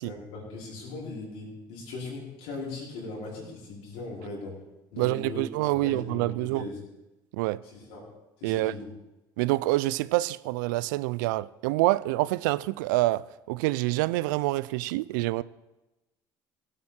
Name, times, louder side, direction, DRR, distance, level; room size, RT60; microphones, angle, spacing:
voice 1, 0.0-4.6 4.9-5.4 5.7-6.8 7.6-8.0 8.4-8.9, left 3 dB, 80° left, 5.0 m, -39 dB
voice 2, 5.0-6.6 7.3-7.6 8.4-8.7 9.4-15.4, right 18 dB, 85° right, 0.4 m, -27 dB
17.0 x 8.6 x 4.3 m
supercardioid pair, 75°, 10 cm